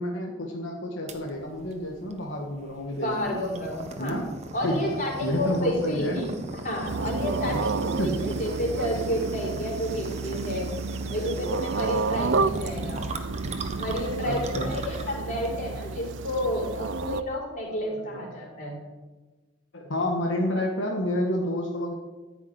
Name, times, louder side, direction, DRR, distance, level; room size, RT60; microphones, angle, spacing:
voice 1, 0.0-3.4 4.0-4.3 4.6-4.8 5.2-6.2 7.5-7.6 8.0-8.2 9.1-9.2 10.9-12.1 12.8-13.3 14.2-14.7 17.8-18.5 19.7-21.9, left 1 dB, 75° left, 0 dB, 1.7 m, -30 dB
sound 1, 1.1-17.4, right 2 dB, 35° right, 1.3 m, -39 dB
voice 2, 3.0-4.2 4.5-6.3 6.6-10.7 11.1-13.0 13.8-18.8, left 1 dB, 40° left, -4 dB, 5.0 m, -30 dB
sound 2, 6.9-17.2, right 4 dB, 70° right, 0.5 m, -31 dB
14.5 x 6.1 x 9.9 m, 1.3 s
head